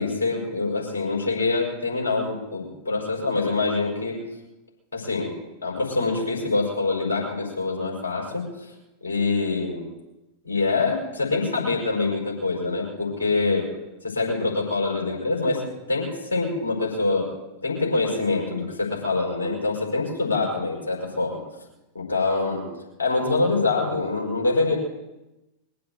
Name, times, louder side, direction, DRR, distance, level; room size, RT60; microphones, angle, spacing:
voice 1, 0.0-4.2 4.9-5.3 5.6-8.4 9.0-9.8 10.4-13.7 14.0-15.6 15.9-17.3 17.6-21.4 21.9-22.7 23.0-24.8, left 3 dB, 70° left, -4 dB, 5.5 m, -25 dB
21.5 x 7.7 x 8.1 m, 0.98 s
figure-of-eight pair, 90°, 0 cm